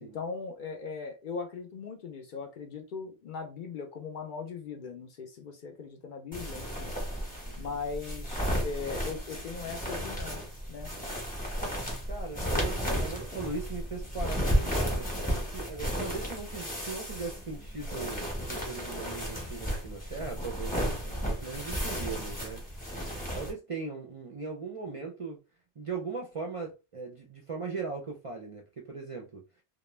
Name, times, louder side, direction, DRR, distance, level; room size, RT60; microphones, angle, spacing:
voice 1, 0.0-6.9 7.6-10.4 10.7-10.9, left 5 dB, 60° left, 0.6 m, -39 dB
sound 1, 6.3-23.5, equal, 10° left, 0.8 m, -33 dB
voice 2, 12.1-22.6 23.3-25.4 25.8-29.6, right 4 dB, 45° right, 0.4 m, -39 dB
2.3 x 2.1 x 3.1 m
omnidirectional pair, 1.1 m